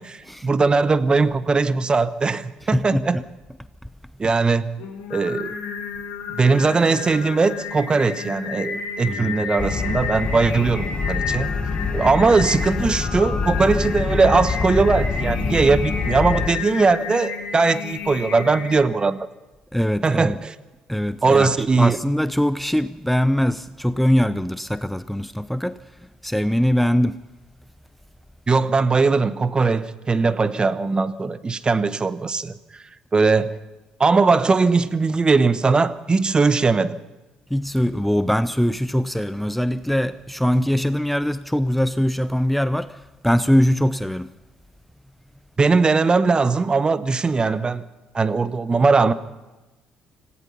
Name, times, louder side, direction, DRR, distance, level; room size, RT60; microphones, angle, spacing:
voice 1, 0.0-3.2 4.2-4.7 5.1-5.5 6.4-11.5 11.9-19.2 20.0-20.5 21.2-22.0 28.5-32.8 33.1-33.6 34.0-37.0 45.6-47.8 48.1-49.1, right 4 dB, 30° right, 1.1 m, -20 dB
voice 2, 2.7-3.2 9.1-9.4 19.7-20.4 20.9-25.8 26.2-27.2 37.5-44.3, equal, 5° left, 0.7 m, -22 dB
Singing, 4.8-18.8, left 6 dB, 70° left, 4.0 m, -32 dB
sound 1, 9.6-16.5, left 4 dB, 30° left, 1.4 m, -26 dB
26.5 x 17.0 x 5.7 m
figure-of-eight pair, 50°, 3 cm